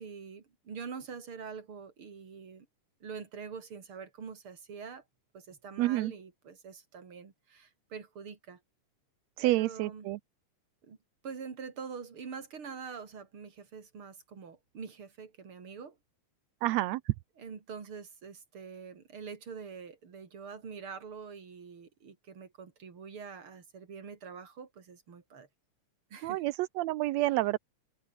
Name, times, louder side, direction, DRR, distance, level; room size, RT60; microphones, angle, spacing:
voice 1, 0.0-2.7 3.0-5.0 5.3-8.6 9.4-10.1 10.8-11.0 11.2-16.0 17.4-25.5 26.1-26.4, right 6 dB, 45° right, 3.7 m, -45 dB
voice 2, 5.8-6.1 9.4-10.2 16.6-17.1 26.2-27.6, right 17 dB, 75° right, 1.7 m, -29 dB
omnidirectional pair, 3.5 m